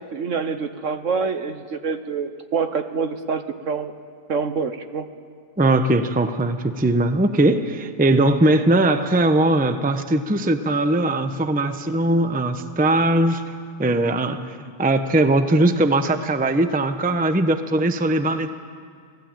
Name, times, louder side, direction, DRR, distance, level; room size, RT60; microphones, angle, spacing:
voice 1, 0.0-3.9 4.3-5.1, right 5 dB, 55° right, 9 dB, 1.3 m, -26 dB
voice 2, 5.6-13.4 13.8-14.5 14.8-18.5, right 2 dB, 5° right, 8 dB, 0.7 m, -20 dB
28.5 x 18.5 x 9.0 m, 2.1 s
omnidirectional pair, 1.7 m